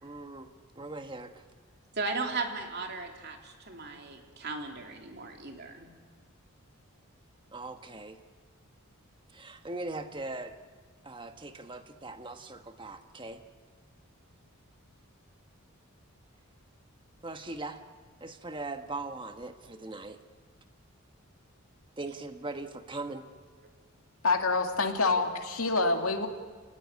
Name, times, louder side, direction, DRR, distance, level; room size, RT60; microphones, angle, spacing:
voice 1, 0.0-1.4 7.5-8.2 9.3-10.5 11.0-13.4 17.2-17.8 18.2-20.2 22.0-23.3, right 2 dB, 20° right, 7 dB, 1.4 m, -40 dB
voice 2, 2.0-5.9, right 3 dB, 45° right, 3 dB, 3.2 m, -36 dB
voice 3, 24.2-26.3, left 3 dB, 75° left, 4 dB, 2.5 m, -26 dB
28.5 x 19.0 x 9.7 m, 1.5 s
head